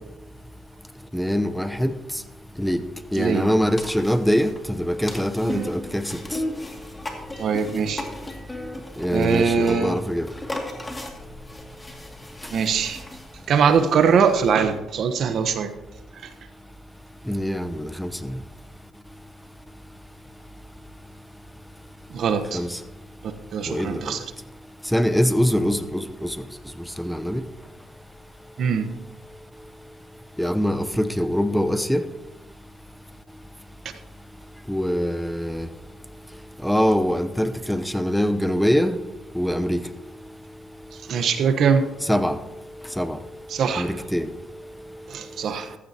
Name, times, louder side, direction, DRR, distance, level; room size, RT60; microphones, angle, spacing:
voice 1, 1.1-1.9 2.6-2.8 3.1-6.0 9.0-10.3 17.3-18.4 22.5-22.8 23.7-24.1 24.9-26.4 27.0-27.4 30.4-32.0 34.7-35.7 36.6-39.0 39.3-39.8 42.0-42.4 43.0-43.2 43.8-44.3, equal, ahead, 10 dB, 0.9 m, -23 dB
voice 2, 3.1-3.5 5.4-5.7 7.4-8.0 9.1-10.0 12.5-13.0 13.5-15.7 16.2-16.3 22.1-22.6 23.2-24.2 28.6-28.9 41.1-41.9 43.5-43.9 45.1-45.8, right 6 dB, 65° right, 9 dB, 1.1 m, -22 dB
sound 1, 3.7-13.9, left 2 dB, 20° left, 2.4 m, -36 dB
15.0 x 14.0 x 2.9 m, 1.0 s
cardioid pair, 90°, 0 cm